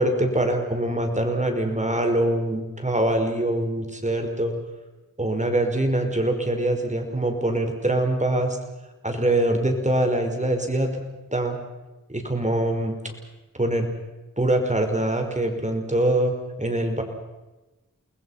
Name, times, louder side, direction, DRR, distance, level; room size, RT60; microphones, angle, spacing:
voice 1, 0.0-4.5 5.2-8.6 9.0-11.0 11.3-11.6 12.1-13.0 13.6-13.9 14.4-16.3 16.6-17.0, right 1 dB, 20° right, 4 dB, 5.1 m, -23 dB
29.0 x 20.5 x 5.8 m, 1.1 s
cardioid pair, 40°, 33 cm